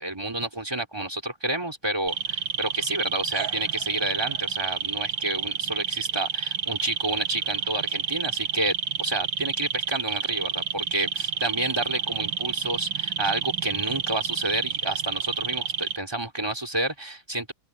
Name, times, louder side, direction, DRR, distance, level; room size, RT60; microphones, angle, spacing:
voice 1, 0.0-17.5, right 1 dB, 10° right, 3.8 m, -30 dB
sound 1, 2.1-16.0, right 7 dB, 65° right, 2.1 m, -29 dB
open air
omnidirectional pair, 2.3 m